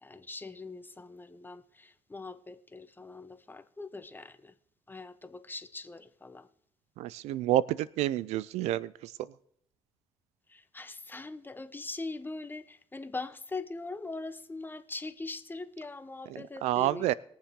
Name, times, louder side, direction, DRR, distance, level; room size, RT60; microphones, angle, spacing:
voice 1, 0.0-4.5 4.9-6.5 10.5-17.1, left 3 dB, 20° left, 1.0 m, -42 dB
voice 2, 7.0-8.9 16.6-17.1, right 14 dB, 80° right, 0.5 m, -28 dB
21.5 x 7.3 x 3.7 m
supercardioid pair, 75°, 11 cm